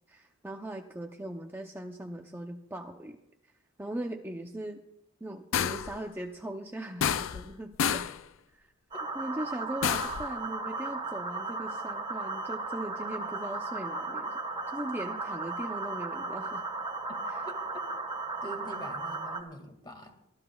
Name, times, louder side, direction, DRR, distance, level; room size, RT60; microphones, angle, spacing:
voice 1, 0.1-3.2 3.4-3.5 3.8-4.8 5.2-8.0 8.5-8.7 9.1-14.4 14.7-16.6 17.3-17.4, right 1 dB, 10° right, 3 dB, 0.6 m, -39 dB
sound 1, 5.5-6.0 7.0-7.5 7.8-8.2 9.8-10.3, left 8 dB, 65° left, 0.4 m, -29 dB
sound 2, 8.9-19.4, right 3 dB, 25° right, 1.4 m, -36 dB
voice 2, 18.4-20.1, equal, 20° left, 4 dB, 2.0 m, -44 dB
24.5 x 14.0 x 2.3 m, 0.83 s
head